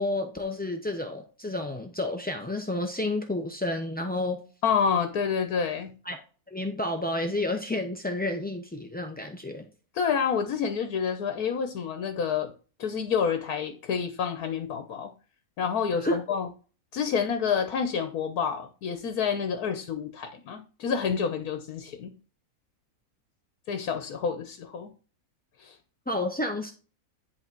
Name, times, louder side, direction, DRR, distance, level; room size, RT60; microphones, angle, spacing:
voice 1, 0.0-4.4 6.1-6.2 6.5-9.7 16.0-16.2 26.1-26.7, left 1 dB, 15° left, 3 dB, 0.3 m, -30 dB
voice 2, 4.6-5.9 9.9-12.5 12.8-15.1 15.6-16.5 16.9-22.1 23.7-24.9 25.6-25.8, left 6 dB, 80° left, 7 dB, 1.4 m, -28 dB
10.5 x 3.7 x 4.5 m, 0.37 s
omnidirectional pair, 1.6 m